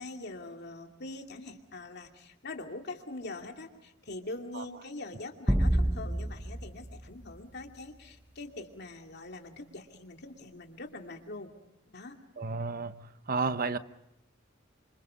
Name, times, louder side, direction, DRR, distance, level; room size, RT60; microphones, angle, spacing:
voice 1, 0.0-11.5 11.9-12.2, left 2 dB, 55° left, 2.5 m, -43 dB
sound 1, 5.5-8.1, right 1 dB, 10° right, 1.2 m, -30 dB
voice 2, 12.4-13.8, right 4 dB, 45° right, 0.9 m, -32 dB
28.0 x 25.0 x 5.6 m
head